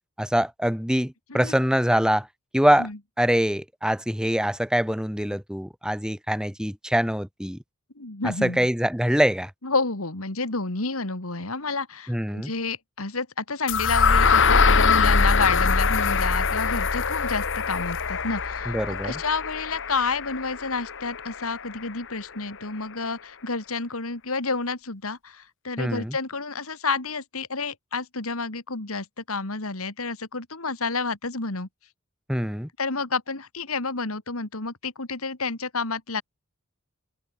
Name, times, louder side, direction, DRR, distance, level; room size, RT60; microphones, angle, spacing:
voice 1, 0.2-2.3 2.5-2.9 3.2-7.6 8.4-9.5 12.1-12.5 18.7-19.2 25.8-26.2 32.3-32.7, equal, 5° right, 2.4 m, -24 dB
voice 2, 8.0-8.7 9.6-31.7 32.8-36.2, left 4 dB, 80° left, 2.8 m, -30 dB
sound 1, 13.7-21.6, left 5 dB, 60° left, 2.1 m, -23 dB
open air
head